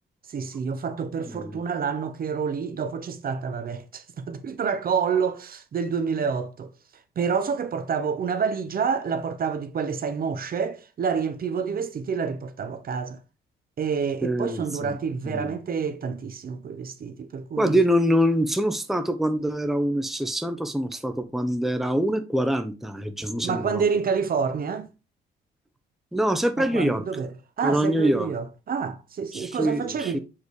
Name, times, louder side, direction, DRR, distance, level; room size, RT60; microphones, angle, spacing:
voice 1, 0.3-6.7 7.2-13.2 13.8-17.8 23.4-24.9 26.6-30.2, right 6 dB, 45° right, 0.8 m, -28 dB
voice 2, 14.2-15.0 15.2-15.5 17.6-23.8 26.1-27.0 27.6-28.3 29.3-30.2, equal, ahead, 0.8 m, -25 dB
7.4 x 4.0 x 3.2 m
cardioid pair, 90°, 20 cm